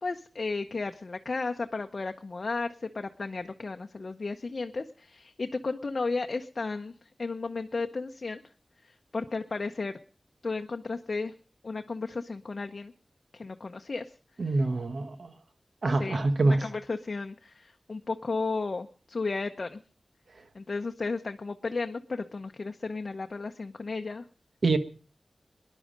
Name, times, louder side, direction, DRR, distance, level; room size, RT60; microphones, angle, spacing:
voice 1, 0.0-8.4 8.8-10.0 10.4-11.3 11.6-12.9 13.3-14.1 14.5-14.6 16.0-19.8 20.5-24.2, left 3 dB, 65° left, 0.7 m, -34 dB
voice 2, 14.4-15.3 15.8-16.6 24.6-24.8, right 2 dB, 70° right, 1.2 m, -25 dB
19.0 x 11.0 x 5.1 m
wide cardioid pair, 55°, 0 cm